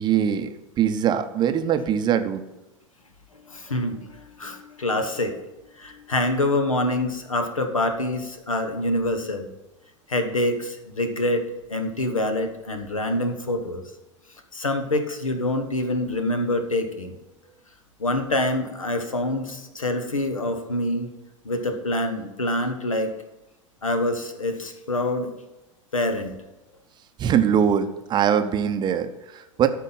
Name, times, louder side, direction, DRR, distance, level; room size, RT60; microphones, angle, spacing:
voice 1, 0.0-2.4 27.2-29.7, right 8 dB, 25° right, 9 dB, 0.7 m, -22 dB
voice 2, 3.5-5.3 5.8-9.5 10.1-13.8 14.5-17.1 18.0-21.1 21.4-23.1 23.8-25.3 25.9-26.3, left 1 dB, 80° left, 7 dB, 1.1 m, -26 dB
13.0 x 4.6 x 5.5 m, 1.0 s
figure-of-eight pair, 85°, 17 cm